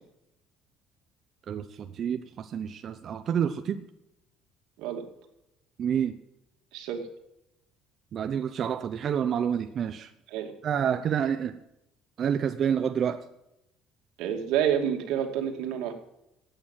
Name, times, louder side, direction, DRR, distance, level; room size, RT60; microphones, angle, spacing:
voice 1, 1.5-3.8 5.8-6.2 8.1-10.1 10.6-11.6 12.2-13.3, right 8 dB, 40° right, 9 dB, 0.7 m, -28 dB
voice 2, 6.7-7.1 10.3-10.5 14.2-15.9, right 9 dB, 85° right, 4 dB, 2.5 m, -28 dB
16.0 x 8.9 x 7.3 m, 0.85 s
cardioid pair, 150°, 0 cm